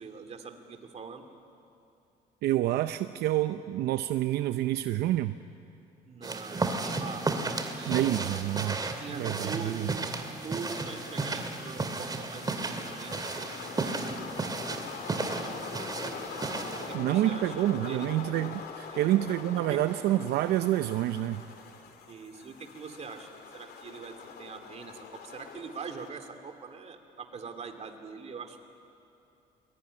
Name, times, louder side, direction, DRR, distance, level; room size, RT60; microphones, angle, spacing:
voice 1, 0.0-1.3 6.1-7.3 7.7-8.3 9.0-10.1 10.4-14.2 15.3-18.1 18.9-19.2 19.6-19.8 22.1-28.7, right 5 dB, 40° right, 6 dB, 2.7 m, -43 dB
voice 2, 2.4-5.4 7.9-8.8 9.1-9.9 16.9-21.4, right 14 dB, 75° right, 10 dB, 0.7 m, -28 dB
sound 1, 6.2-17.0, right 3 dB, 25° right, 2.3 m, -34 dB
sound 2, 10.6-26.1, left 6 dB, 70° left, 2.9 m, -43 dB
22.0 x 21.5 x 9.8 m, 2.7 s
cardioid pair, 110°, 17 cm